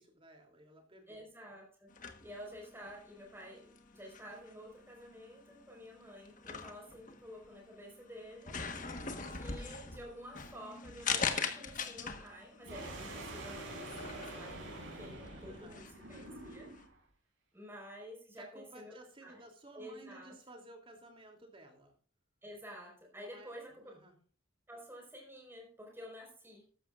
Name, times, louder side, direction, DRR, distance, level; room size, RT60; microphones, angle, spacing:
voice 1, 0.0-1.3 15.4-15.9 18.3-21.9 23.1-23.5 23.8-24.1, right 1 dB, 30° right, 2 dB, 2.9 m, -55 dB
voice 2, 1.1-1.9 2.2-8.7 9.3-16.7 17.5-19.4 19.7-20.3 22.4-24.0 24.7-26.6, equal, 10° right, 0 dB, 4.8 m, -50 dB
sound 1, 1.9-16.9, left 5 dB, 40° left, 1.3 m, -42 dB
sound 2, 12.6-17.0, right 1 dB, 80° right, 5.3 m, -46 dB
13.5 x 13.0 x 2.5 m, 0.42 s
head